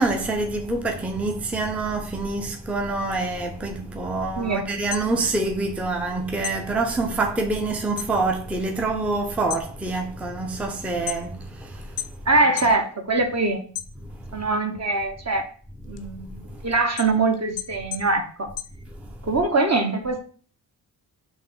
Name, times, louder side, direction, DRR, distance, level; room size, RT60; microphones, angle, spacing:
voice 1, 0.0-12.1 14.0-14.4 16.5-16.6 19.0-19.1, right 3 dB, 5° right, 0.6 m, -26 dB
sound 1, 4.9-6.1 6.4-8.2 8.5-9.0 9.4-11.5 12.0-12.8 13.2-14.4 14.8-19.4, left 11 dB, 65° left, 0.7 m, -36 dB
voice 2, 12.3-13.6 14.3-15.4 15.9-18.5 19.2-20.2, right 3 dB, 35° right, 1.0 m, -23 dB
3.8 x 2.6 x 4.5 m
supercardioid pair, 50°, 44 cm